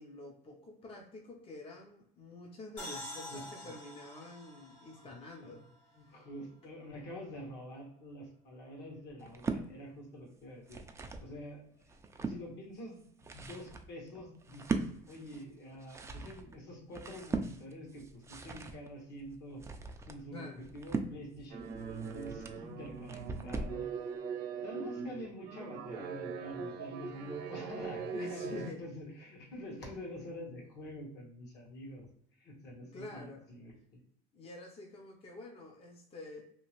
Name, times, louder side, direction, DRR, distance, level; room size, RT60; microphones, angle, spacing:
voice 1, 0.0-5.6 6.0-6.2 20.3-20.6 28.1-28.9 32.9-33.5 34.3-36.4, left 2 dB, 30° left, 1 dB, 0.6 m, -48 dB
sound 1, 2.8-6.3, left 1 dB, 90° left, 1.4 m, -47 dB
voice 2, 3.2-3.8 5.0-5.1 5.4-5.6 6.0-10.8 11.2-19.6 20.1-20.5 20.7-21.6 22.0-23.9 24.6-32.1 32.4-34.0, equal, 60° left, -1 dB, 1.3 m, -47 dB
sound 2, 9.2-9.7 10.4-11.3 11.8-12.4 13.0-23.8, right 4 dB, 15° right, 0.3 m, -40 dB
sound 3, 21.5-28.7, right 6 dB, 65° right, 0.8 m, -41 dB
2.8 x 2.4 x 3.0 m, 0.69 s
supercardioid pair, 105°, 19 cm